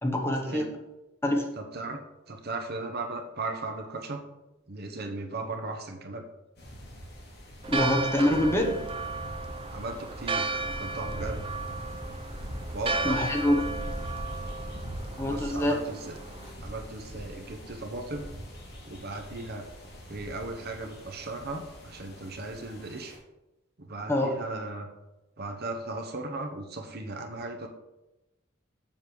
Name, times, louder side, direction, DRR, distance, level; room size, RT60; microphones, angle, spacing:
voice 1, 0.0-0.7 1.2-1.5 7.7-8.9 13.0-13.6 15.2-15.8 24.1-24.4, left 1 dB, 15° left, 0 dB, 1.3 m, -25 dB
voice 2, 1.6-4.2 4.7-6.2 9.7-11.4 12.7-13.2 15.3-16.2 16.6-18.3 18.9-19.7 20.1-23.2 23.8-24.9 25.4-27.7, right 2 dB, 55° right, 4 dB, 1.0 m, -37 dB
sound 1, 6.6-23.2, equal, 60° left, 3.2 m, -41 dB
Church bell, 7.6-16.5, right 3 dB, 30° right, 0.6 m, -35 dB
7.4 x 7.3 x 4.8 m, 0.98 s
head